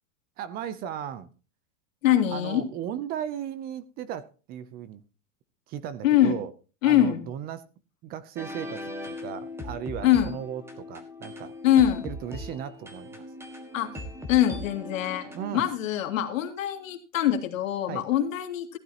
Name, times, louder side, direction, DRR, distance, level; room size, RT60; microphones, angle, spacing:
voice 1, 0.4-1.3 2.3-5.0 5.7-6.5 6.8-7.6 8.0-11.5 12.0-13.2 15.3-15.7 17.9-18.1, right 9 dB, 25° right, 0.6 m, -36 dB
voice 2, 2.0-2.6 6.0-6.4 6.8-7.3 10.0-10.4 11.6-12.1 13.7-14.0 14.3-18.8, left 11 dB, 80° left, 2.5 m, -23 dB
sound 1, 8.4-15.5, left 1 dB, 5° right, 1.7 m, -39 dB
15.0 x 12.0 x 2.9 m
supercardioid pair, 155°, 39 cm